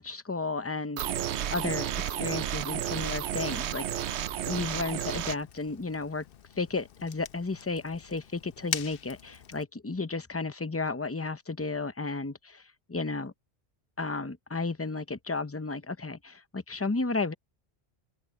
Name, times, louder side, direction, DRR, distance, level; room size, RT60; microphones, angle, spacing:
voice 1, 0.0-4.2 4.5-6.2 6.6-13.3 14.0-17.3, left 3 dB, 15° left, 0.5 m, -33 dB
sound 1, 1.0-5.4, right 10 dB, 75° right, 0.9 m, -32 dB
Fire, 2.8-9.6, left 9 dB, 60° left, 0.8 m, -43 dB
open air
omnidirectional pair, 1.2 m